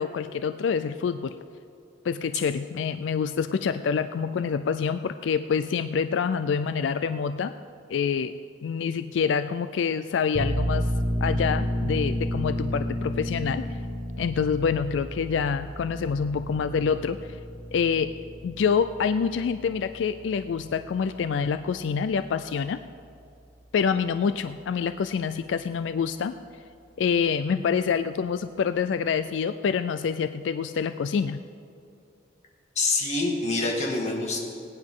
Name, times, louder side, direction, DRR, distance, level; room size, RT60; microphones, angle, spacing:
voice 1, 0.0-1.3 2.0-7.5 7.9-8.3 8.6-10.9 11.2-13.7 14.2-17.4 17.7-18.1 18.4-22.8 23.7-26.4 27.0-31.4, left 6 dB, 85° left, 11 dB, 0.4 m, -26 dB
sound 1, 10.3-21.6, equal, 60° right, 1.2 m, -31 dB
voice 2, 32.8-34.4, left 3 dB, 40° left, -1 dB, 2.0 m, -26 dB
20.5 x 9.6 x 3.7 m, 2.5 s
head